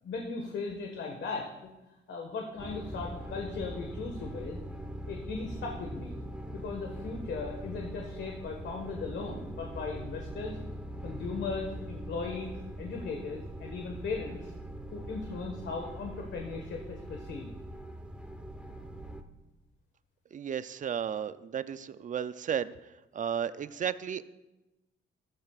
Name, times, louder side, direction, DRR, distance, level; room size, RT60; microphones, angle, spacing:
voice 1, 0.0-1.7 2.1-4.6 5.1-6.2 6.5-10.6 11.0-12.5 12.8-14.5 14.9-17.5, left 4 dB, 65° left, 1 dB, 1.5 m, -38 dB
sound 1, 2.6-19.2, right 1 dB, 5° right, 1.0 m, -42 dB
voice 2, 20.3-22.7 23.1-24.3, right 8 dB, 40° right, 14 dB, 0.5 m, -33 dB
13.5 x 13.5 x 2.4 m, 1.0 s
cardioid pair, 90°, 20 cm